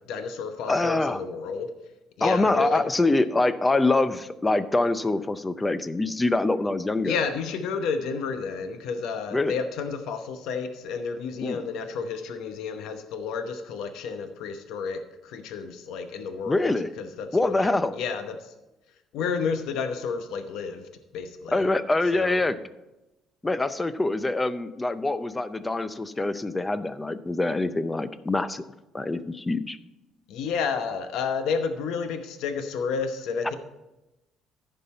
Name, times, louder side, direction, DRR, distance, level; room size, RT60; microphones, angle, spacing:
voice 1, 0.0-1.7 2.2-2.8 7.0-18.5 19.1-21.7 22.1-22.4 30.3-33.6, left 5 dB, 75° left, 7 dB, 0.9 m, -31 dB
voice 2, 0.7-1.2 2.2-7.1 9.3-9.6 11.4-11.6 16.5-16.9 17.3-17.9 21.5-22.6 23.4-28.6 28.9-29.8, left 2 dB, 15° left, 13 dB, 0.5 m, -25 dB
14.5 x 5.4 x 4.3 m, 0.99 s
cardioid pair, 120°, 0 cm